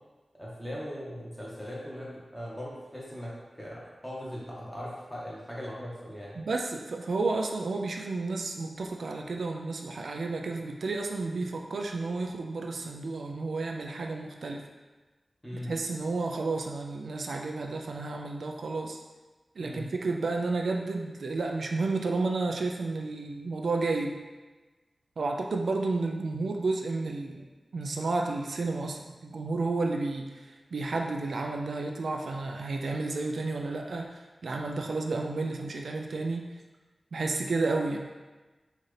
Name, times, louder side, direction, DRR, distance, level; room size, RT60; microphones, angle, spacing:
voice 1, 0.4-6.4 15.4-15.7 19.6-19.9, equal, 10° left, -6 dB, 1.1 m, -39 dB
voice 2, 6.4-14.6 15.5-19.0 19.6-24.1 25.2-27.5 27.7-36.4 37.1-38.0, right 3 dB, 85° right, 2 dB, 0.3 m, -31 dB
4.1 x 2.5 x 3.2 m, 1.2 s
wide cardioid pair, 75°, 0 cm